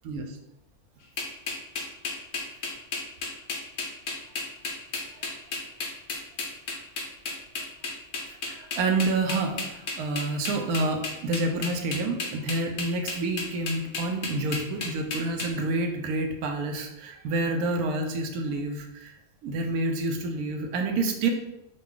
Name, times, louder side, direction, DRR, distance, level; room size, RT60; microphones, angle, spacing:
voice 1, 0.0-0.4 5.1-5.3 8.3-19.1 19.4-21.3, right 2 dB, 85° right, 4 dB, 1.1 m, -28 dB
sound 1, 1.2-15.5, left 3 dB, 70° left, 1.1 m, -32 dB
3.9 x 2.2 x 3.6 m, 0.89 s
omnidirectional pair, 1.5 m